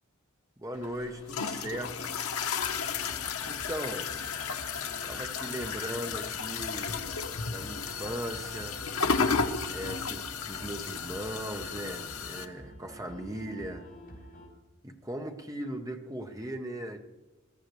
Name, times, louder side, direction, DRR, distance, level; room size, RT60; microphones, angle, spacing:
voice 1, 0.6-2.2 3.4-4.1 5.0-7.1 7.4-8.8 9.7-13.9 14.8-17.0, right 1 dB, 15° right, 5 dB, 0.9 m, -38 dB
sound 1, 0.7-12.5, left 5 dB, 80° left, 0.9 m, -33 dB
sound 2, 2.6-14.5, equal, 40° left, 4.9 m, -49 dB
21.5 x 14.0 x 3.2 m, 1.1 s
head